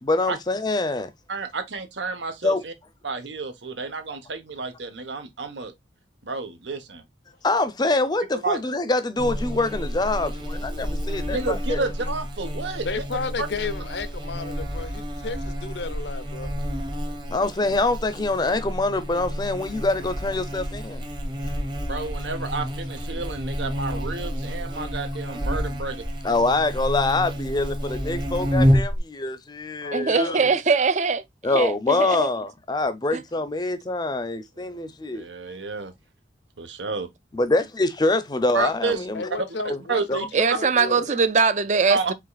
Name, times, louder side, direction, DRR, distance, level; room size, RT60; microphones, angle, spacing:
voice 1, 0.0-1.1 2.4-2.6 7.4-11.9 17.3-21.0 26.2-30.5 31.4-35.3 37.3-39.3 39.7-39.8 40.1-40.2, left 2 dB, 25° left, 0.5 m, -25 dB
voice 2, 1.3-2.7 3.0-5.7 6.2-7.0 8.4-8.6 11.3-13.0 13.4-13.5 21.9-26.0 34.6-34.9 35.1-35.9 36.6-37.1 38.5-39.1 39.6-40.3 41.9-42.1, right 3 dB, 90° right, 1.1 m, -30 dB
Buzz, 9.2-29.0, equal, 25° right, 1.0 m, -29 dB
voice 3, 12.8-16.5 29.8-30.6 39.1-41.1, left 4 dB, 75° left, 0.6 m, -33 dB
voice 4, 29.9-31.2 31.5-32.3 33.1-33.2 40.3-42.0, right 5 dB, 40° right, 0.5 m, -21 dB
5.0 x 3.7 x 2.3 m
head